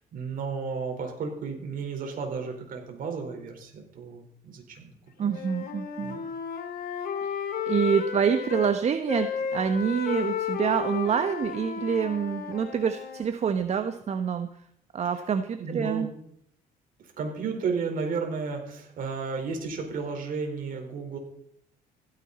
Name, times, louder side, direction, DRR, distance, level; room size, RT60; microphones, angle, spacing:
voice 1, 0.0-4.9 5.2-5.3 6.0-6.2 15.6-16.1 17.2-21.2, right 5 dB, 55° right, 3 dB, 4.5 m, -33 dB
Wind instrument woodwind instrument, 5.2-8.7 9.1-13.3, left 8 dB, 60° left, 2.4 m, -33 dB
voice 2, 5.2-6.2 7.2-7.3 7.7-14.5 14.9-16.1, right 7 dB, 40° right, 9 dB, 1.0 m, -26 dB
16.0 x 14.0 x 4.2 m, 0.72 s
cardioid pair, 110°, 17 cm